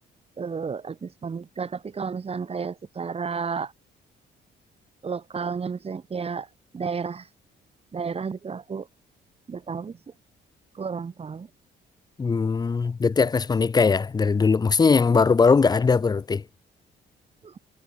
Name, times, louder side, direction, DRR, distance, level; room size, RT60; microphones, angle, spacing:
voice 1, 0.4-3.7 5.0-6.5 6.7-7.3 7.9-8.9 9.5-10.0 10.7-11.5 17.4-17.6, right 5 dB, 30° right, 0.9 m, -32 dB
voice 2, 12.2-16.4, left 5 dB, 20° left, 0.4 m, -20 dB
cardioid pair, 90°, 20 cm